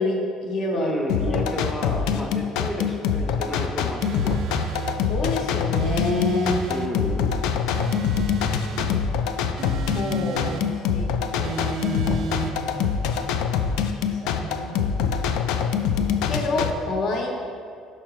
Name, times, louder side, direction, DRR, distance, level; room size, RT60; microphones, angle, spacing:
voice 1, 0.0-0.9 1.3-1.5 5.1-6.6 9.9-12.9 14.1-14.9 16.3-17.3, left 2 dB, 50° left, 1 dB, 0.9 m, -28 dB
voice 2, 0.7-4.6 6.7-7.4, equal, 5° left, 1 dB, 0.6 m, -31 dB
sound 1, 1.1-16.7, left 7 dB, 80° left, 0.3 m, -25 dB
sound 2, 4.0-5.0 5.7-6.9 7.7-8.9 9.6-10.7 11.4-12.6, right 6 dB, 55° right, 0.3 m, -32 dB
5.7 x 4.6 x 4.7 m, 2.2 s
cardioid pair, 160°, 0 cm